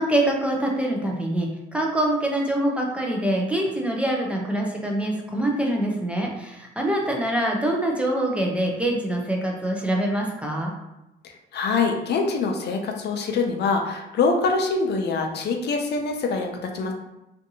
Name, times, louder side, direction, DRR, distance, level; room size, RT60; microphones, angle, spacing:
voice 1, 0.0-10.7, right 1 dB, 5° right, -1 dB, 0.5 m, -24 dB
voice 2, 11.5-16.9, left 4 dB, 60° left, 3 dB, 0.4 m, -24 dB
2.5 x 2.5 x 2.7 m, 0.93 s
cardioid pair, 90°, 20 cm